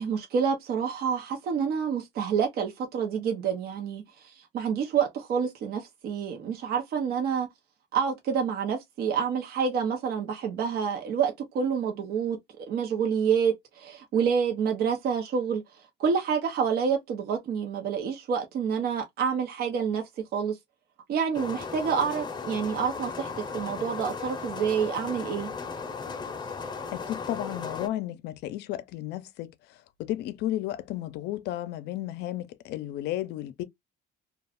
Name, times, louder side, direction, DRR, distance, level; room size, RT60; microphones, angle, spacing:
voice 1, 0.0-7.5 7.9-15.6 16.0-20.0 20.3-20.6 21.1-25.5, right 7 dB, 65° right, 0.7 m, -28 dB
sound 1, 21.3-27.9, left 5 dB, 25° left, 0.6 m, -36 dB
voice 2, 26.9-33.6, left 14 dB, 80° left, 0.5 m, -33 dB
2.4 x 2.4 x 3.3 m
cardioid pair, 110°, 17 cm